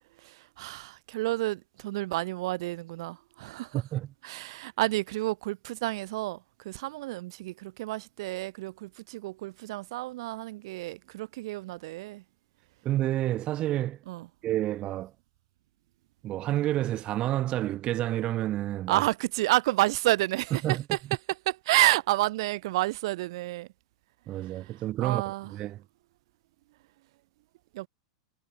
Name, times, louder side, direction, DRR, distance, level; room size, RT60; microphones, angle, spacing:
voice 1, 0.2-3.8 4.2-12.2 14.1-14.3 18.9-21.0 21.5-23.7 24.4-24.7 25.0-25.5 27.7-27.9, right 18 dB, 65° right, 1.1 m, -30 dB
voice 2, 3.7-4.1 12.8-14.0 14.4-15.1 16.2-19.1 20.6-20.8 24.3-25.8, right 14 dB, 40° right, 0.4 m, -29 dB
hypercardioid pair, 105°, 3 cm